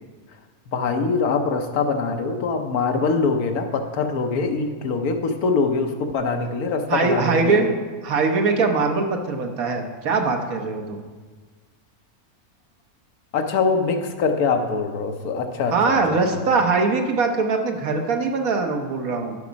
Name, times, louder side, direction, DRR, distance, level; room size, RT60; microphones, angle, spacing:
voice 1, 0.7-7.7 13.3-15.9 16.3-16.5, left 4 dB, 75° left, 5 dB, 1.3 m, -23 dB
voice 2, 6.9-7.7 8.0-11.0 15.7-19.4, right 4 dB, 65° right, 3 dB, 1.4 m, -22 dB
11.5 x 5.9 x 5.1 m, 1.4 s
omnidirectional pair, 1.6 m